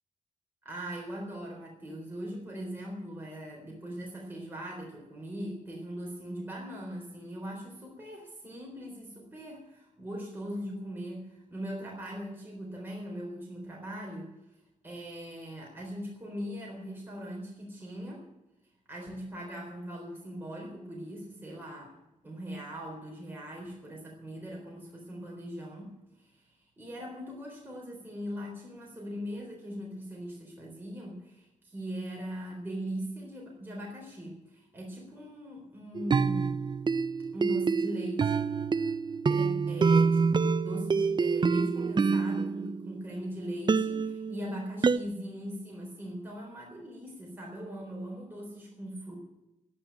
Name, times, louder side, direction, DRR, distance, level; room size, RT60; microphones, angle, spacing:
voice 1, 0.6-14.6 14.8-18.3 18.9-22.0 22.2-36.6 37.3-38.5 39.3-49.2, equal, 15° right, -2 dB, 3.9 m, -40 dB
sound 1, 36.0-43.2 43.7-45.0, right 5 dB, 35° right, 0.5 m, -27 dB
11.5 x 11.0 x 9.0 m, 0.94 s
wide cardioid pair, 120°, 13 cm